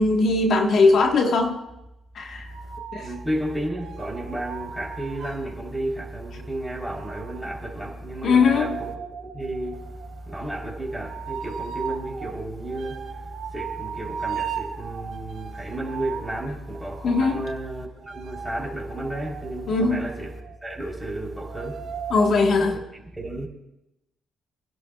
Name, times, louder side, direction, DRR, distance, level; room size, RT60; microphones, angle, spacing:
voice 1, 0.0-1.6 2.1-2.5 2.9-3.1 8.2-8.8 17.0-17.4 19.7-20.1 22.1-22.8, left 3 dB, 60° left, 1.3 m, -20 dB
voice 2, 2.5-20.3 20.6-22.1 22.6-23.5, right 1 dB, ahead, 3.4 m, -32 dB
sound 1, 2.5-5.5 6.8-20.8 21.4-22.3, right 8 dB, 80° right, 2.1 m, -38 dB
27.5 x 11.0 x 2.3 m
cardioid pair, 90°, 0 cm